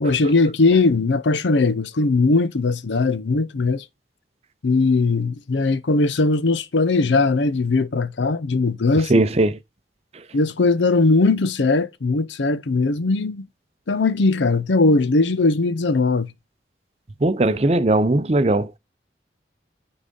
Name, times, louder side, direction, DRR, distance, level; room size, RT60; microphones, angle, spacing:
voice 1, 0.0-3.8 4.6-9.2 10.3-13.5 13.9-16.3, left 3 dB, 80° left, 0.6 m, -19 dB
voice 2, 9.1-9.6 17.2-18.7, right 2 dB, 35° right, 0.6 m, -18 dB
9.8 x 3.9 x 3.8 m
head